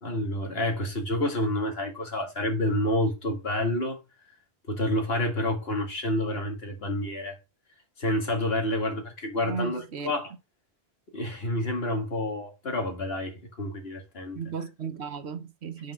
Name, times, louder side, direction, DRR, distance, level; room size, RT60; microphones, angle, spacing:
voice 1, 0.0-4.0 4.7-7.4 8.0-10.3 11.1-14.4, left 1 dB, 65° left, 2.2 m, -29 dB
voice 2, 9.4-10.1 14.3-15.9, right 5 dB, 80° right, 1.2 m, -35 dB
5.8 x 5.2 x 6.2 m
omnidirectional pair, 1.1 m